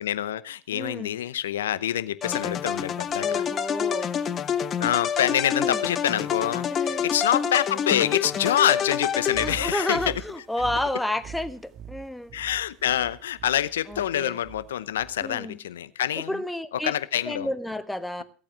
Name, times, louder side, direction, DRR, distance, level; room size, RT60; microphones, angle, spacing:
voice 1, 0.0-3.4 4.8-10.1 12.3-16.3 16.8-17.5, left 11 dB, 80° left, 17 dB, 0.7 m, -26 dB
voice 2, 0.7-1.1 3.2-4.1 5.6-5.8 6.7-7.0 9.4-12.3 13.9-14.3 15.2-15.6 16.3-16.9 17.2-18.2, left 1 dB, 5° left, 12 dB, 1.2 m, -31 dB
sound 1, 2.2-9.9, left 7 dB, 40° left, 1.1 m, -28 dB
sound 2, 9.3-15.4, right 8 dB, 50° right, 1.5 m, -43 dB
16.0 x 8.7 x 6.1 m, 0.39 s
hypercardioid pair, 80°, 0 cm